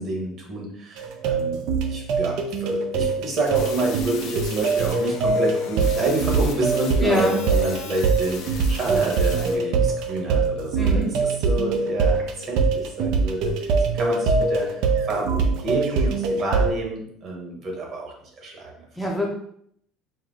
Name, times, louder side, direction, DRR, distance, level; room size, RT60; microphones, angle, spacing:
voice 1, 0.0-1.6 1.9-13.7 13.9-18.8, right 2 dB, 45° right, 0 dB, 1.4 m, -28 dB
sound 1, 1.0-16.7, right 4 dB, 70° right, 0.6 m, -23 dB
sound 2, 3.3-9.5, left 6 dB, 70° left, 0.7 m, -39 dB
voice 2, 7.0-7.3 10.7-11.1 19.0-19.3, left 1 dB, 5° left, -2 dB, 0.6 m, -24 dB
4.5 x 2.2 x 3.8 m, 0.67 s
cardioid pair, 125°, 0 cm